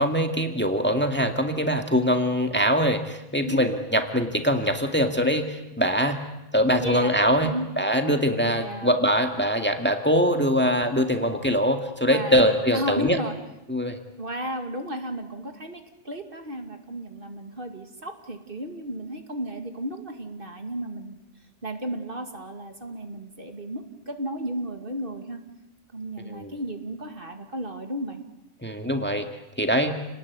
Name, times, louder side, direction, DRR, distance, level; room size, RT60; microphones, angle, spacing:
voice 1, 0.0-6.2 6.5-7.5 7.8-13.2 13.7-14.0 26.3-26.5 28.6-29.3 29.6-29.9, equal, 10° left, 5 dB, 2.0 m, -23 dB
voice 2, 6.8-7.1 7.4-7.7 8.4-8.9 12.1-13.3 14.2-21.2 21.6-25.4 25.9-28.2, right 1 dB, 45° right, 5 dB, 2.6 m, -34 dB
29.5 x 19.5 x 9.6 m, 0.98 s
omnidirectional pair, 1.3 m